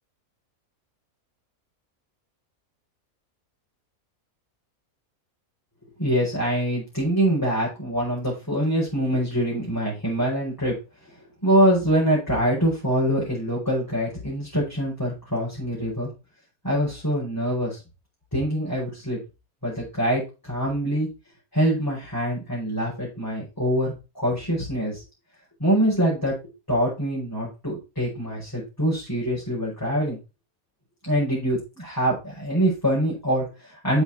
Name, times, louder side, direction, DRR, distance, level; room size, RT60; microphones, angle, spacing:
voice 1, 6.0-10.8 11.4-16.1 16.6-17.8 18.3-19.2 19.6-21.1 21.5-25.0 25.6-26.3 26.7-30.2 31.0-34.0, equal, 15° left, -7 dB, 5.4 m, -24 dB
7.5 x 7.2 x 4.3 m, 0.28 s
omnidirectional pair, 1.5 m